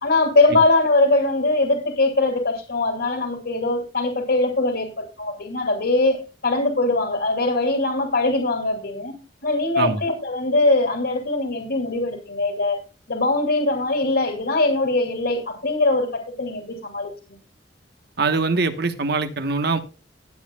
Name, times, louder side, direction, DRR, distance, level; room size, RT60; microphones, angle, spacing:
voice 1, 0.0-9.1 9.4-12.8 13.1-17.1, left 2 dB, 65° left, 3 dB, 2.5 m, -21 dB
voice 2, 18.2-19.8, right 3 dB, 60° right, 9 dB, 1.2 m, -22 dB
19.0 x 8.5 x 2.3 m, 0.30 s
head